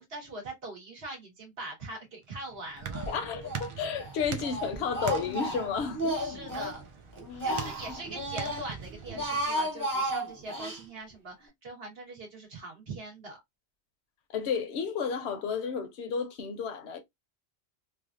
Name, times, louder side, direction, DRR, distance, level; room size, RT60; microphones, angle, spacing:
voice 1, 0.0-3.1 6.2-6.8 7.4-13.4, right 2 dB, 65° right, 1.5 m, -42 dB
sound 1, 2.2-9.5, right 6 dB, 45° right, 0.4 m, -42 dB
Speech, 2.9-3.7 4.0-6.8 7.2-8.6 9.0-10.8, right 1 dB, 20° right, 0.8 m, -33 dB
voice 2, 3.1-6.2 7.3-8.0 8.5-8.6 14.3-17.0, left 6 dB, 75° left, 0.9 m, -32 dB
3.3 x 2.4 x 2.4 m
omnidirectional pair, 1.1 m